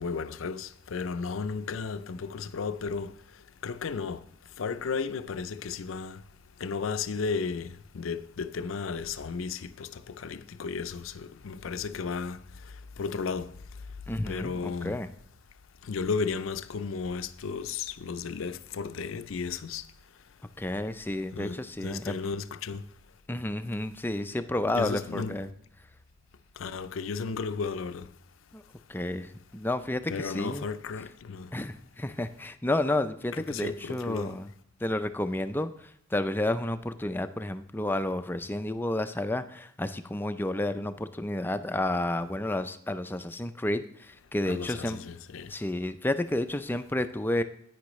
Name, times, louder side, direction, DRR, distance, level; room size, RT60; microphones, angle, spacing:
voice 1, 0.0-3.1 3.6-4.2 4.6-6.2 6.6-12.4 13.0-13.5 14.3-15.0 15.8-19.9 21.3-22.8 24.7-25.4 26.6-28.1 30.1-31.5 33.3-34.4 44.4-45.5, left 5 dB, 85° left, 0.5 m, -34 dB
voice 2, 14.1-15.1 20.6-22.1 23.3-25.5 28.5-28.6 28.9-30.7 31.5-34.5 34.8-45.0 45.5-47.4, left 1 dB, 10° left, 0.4 m, -31 dB
9.9 x 9.3 x 3.1 m
head